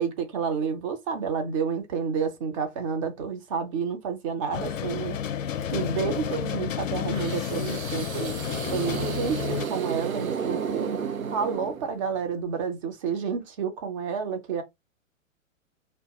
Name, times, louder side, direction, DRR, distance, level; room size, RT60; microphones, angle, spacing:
voice 1, 0.0-5.2 5.7-8.3 8.7-11.0 11.3-14.6, right 6 dB, 25° right, 0.5 m, -30 dB
sound 1, 4.5-9.7, left 8 dB, 70° left, 0.5 m, -31 dB
sound 2, 7.1-12.2, right 6 dB, 90° right, 0.5 m, -33 dB
2.2 x 2.2 x 2.8 m
figure-of-eight pair, 115°, 40 cm